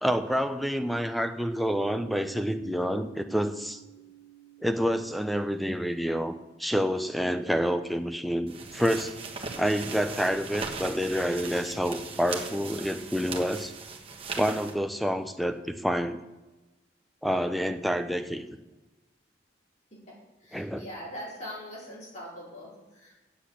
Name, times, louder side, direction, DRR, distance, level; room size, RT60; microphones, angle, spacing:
voice 1, 0.0-3.8 4.6-9.1 9.6-13.7 14.4-16.2 17.2-18.4 20.5-20.8, equal, ahead, 8 dB, 0.6 m, -28 dB
sound 1, 1.6-9.5, right 8 dB, 55° left, 1.7 m, -52 dB
sound 2, 8.5-14.7, right 4 dB, 30° right, 1.4 m, -39 dB
voice 2, 20.4-23.2, equal, 40° left, -6 dB, 4.8 m, -42 dB
8.5 x 7.8 x 8.4 m, 1.1 s
head